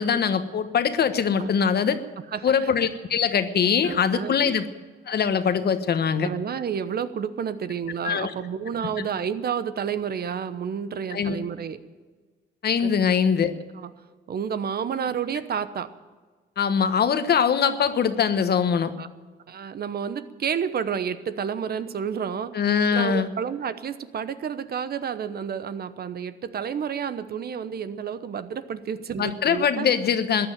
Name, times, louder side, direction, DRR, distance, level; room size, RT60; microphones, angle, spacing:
voice 1, 0.0-2.0 2.4-4.6 5.1-6.3 8.0-8.3 11.1-11.4 12.6-13.5 16.6-18.9 22.5-23.3 29.2-30.5, left 7 dB, 55° left, 10 dB, 1.2 m, -22 dB
voice 2, 2.3-2.7 3.8-4.3 6.2-11.8 12.8-13.2 13.7-13.9 14.3-15.9 19.0-19.1 19.5-22.5 22.9-29.9, right 7 dB, 50° right, 13 dB, 1.0 m, -30 dB
14.5 x 10.0 x 9.0 m, 1.4 s
cardioid pair, 90°, 20 cm